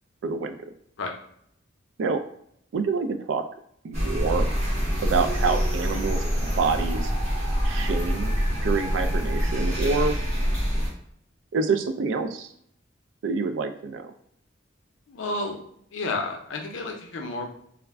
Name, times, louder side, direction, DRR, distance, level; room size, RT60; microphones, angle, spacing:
voice 1, 0.2-0.6 2.0-2.2 2.7-3.5 3.8-4.5 5.0-7.1 7.6-10.2 11.5-12.5 13.2-14.1, right 4 dB, 80° right, 8 dB, 0.3 m, -27 dB
sound 1, 3.9-10.9, equal, 40° right, 1.0 m, -25 dB
voice 2, 15.1-15.6 15.9-17.5, left 2 dB, 85° left, 3 dB, 0.5 m, -31 dB
2.4 x 2.1 x 3.3 m, 0.71 s
head